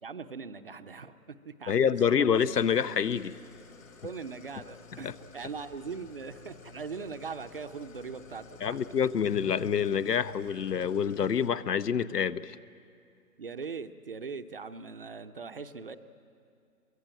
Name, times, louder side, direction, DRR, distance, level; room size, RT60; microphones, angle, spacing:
voice 1, 0.0-1.9 4.0-8.8 13.4-16.0, right 5 dB, 35° right, 10 dB, 0.7 m, -40 dB
voice 2, 1.7-3.4 5.0-5.1 8.6-12.6, left 7 dB, 80° left, 17 dB, 1.0 m, -27 dB
Idling, 2.3-11.5, left 5 dB, 55° left, 3.0 m, -53 dB
23.5 x 22.0 x 8.9 m, 2.5 s
hypercardioid pair, 160°, 47 cm